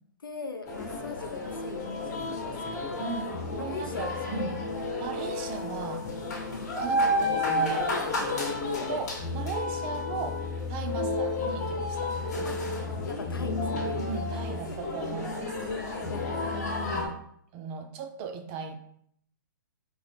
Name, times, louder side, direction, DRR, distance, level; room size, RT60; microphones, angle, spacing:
voice 1, 0.2-3.1 3.6-4.7 6.5-6.7 8.2-9.1 10.9-11.2 12.4-12.6 13.1-13.9 14.3-14.8 15.6-17.2, left 4 dB, 85° left, 6 dB, 0.5 m, -41 dB
sound 1, 0.7-17.1, left 2 dB, 50° left, 0.9 m, -31 dB
voice 2, 3.0-4.5 5.0-6.1 6.7-7.9 8.8-12.2 14.0-15.6 16.8-17.2 17.5-18.8, right 6 dB, 30° right, 6 dB, 0.4 m, -37 dB
4.2 x 2.0 x 3.3 m, 0.66 s
hypercardioid pair, 130°, 11 cm